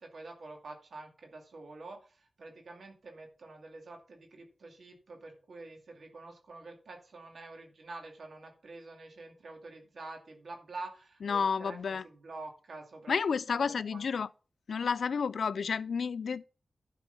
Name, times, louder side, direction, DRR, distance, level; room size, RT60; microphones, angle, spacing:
voice 1, 0.0-13.1 13.5-14.0, right 3 dB, 75° right, 2.5 m, -47 dB
voice 2, 11.2-12.0 13.1-14.3 14.7-16.4, left 6 dB, 85° left, 0.3 m, -31 dB
12.0 x 4.6 x 5.7 m
cardioid pair, 55°, 0 cm